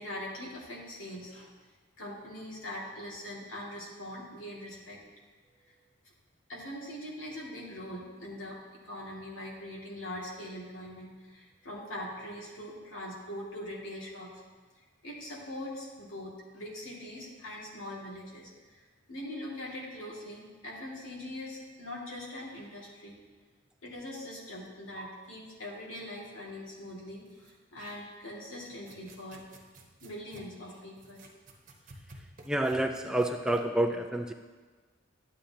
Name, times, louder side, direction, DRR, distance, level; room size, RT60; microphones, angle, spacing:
voice 1, 0.0-1.5 2.0-5.0 6.5-8.6 8.8-14.3 15.0-18.8 19.1-23.2 23.8-29.4 30.0-31.2, left 1 dB, 85° left, -4 dB, 2.2 m, -42 dB
sound 1, 24.7-24.8 25.0-25.1 27.3-28.3 28.7-33.7, right 2 dB, 40° right, 1.1 m, -53 dB
voice 2, 32.4-34.3, right 1 dB, 5° right, 4 dB, 0.3 m, -28 dB
11.5 x 8.7 x 2.8 m, 1.4 s
head